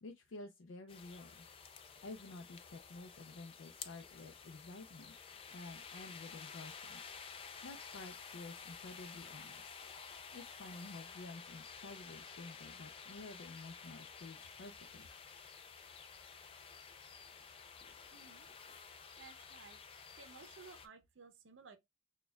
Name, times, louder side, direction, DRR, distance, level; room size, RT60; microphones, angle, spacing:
voice 1, 0.0-1.5 2.0-5.2 5.5-7.0 7.6-9.7 10.3-15.1, left 3 dB, 90° left, 0.5 m, -51 dB
sound 1, 0.9-20.9, left 6 dB, 30° left, 0.3 m, -52 dB
voice 2, 18.1-18.5 19.2-19.8 20.2-21.8, right 5 dB, 80° right, 0.6 m, -57 dB
6.1 x 2.3 x 2.2 m
head